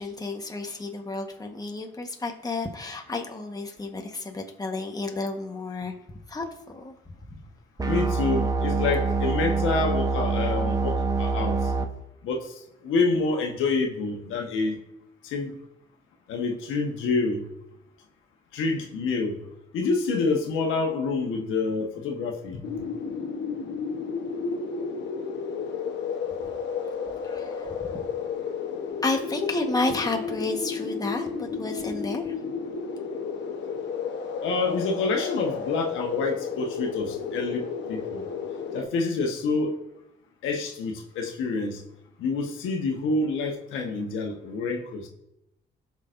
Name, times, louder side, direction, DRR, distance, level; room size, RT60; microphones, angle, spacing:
voice 1, 0.0-5.9 6.3-6.9 7.3-7.4 27.2-28.0 29.0-32.3, left 3 dB, 20° left, 3 dB, 1.2 m, -31 dB
voice 2, 7.8-11.7 12.2-14.8 15.2-15.5 16.3-17.5 18.5-19.4 19.7-22.6 34.4-38.3 38.7-39.8 40.4-41.8 42.2-45.1, left 3 dB, 85° left, 2 dB, 1.3 m, -27 dB
sound 1, 7.8-11.8, right 4 dB, 20° right, 0.9 m, -25 dB
sound 2, 22.6-38.8, left 5 dB, 65° left, 1.1 m, -32 dB
16.0 x 6.0 x 2.6 m, 0.84 s
cardioid pair, 90°, 20 cm